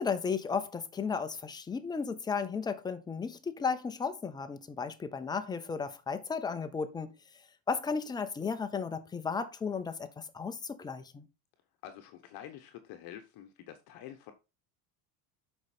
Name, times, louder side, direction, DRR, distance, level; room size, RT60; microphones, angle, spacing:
voice 1, 0.0-7.1 7.7-11.3, left 5 dB, 10° left, 0.4 m, -34 dB
voice 2, 11.8-14.3, left 11 dB, 50° left, 1.0 m, -47 dB
7.9 x 5.3 x 4.2 m
cardioid pair, 165°, 48 cm